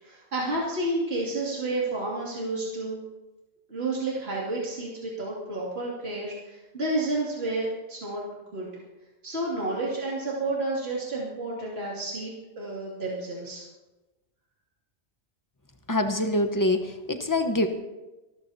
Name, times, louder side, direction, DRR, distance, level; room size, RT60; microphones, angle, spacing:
voice 1, 0.0-3.0 3.7-8.2 8.5-8.7 9.2-13.6, right 2 dB, 65° right, -6 dB, 2.9 m, -30 dB
voice 2, 15.9-17.7, left 1 dB, 20° left, 7 dB, 1.0 m, -25 dB
25.0 x 14.0 x 2.8 m, 1.1 s
omnidirectional pair, 1.1 m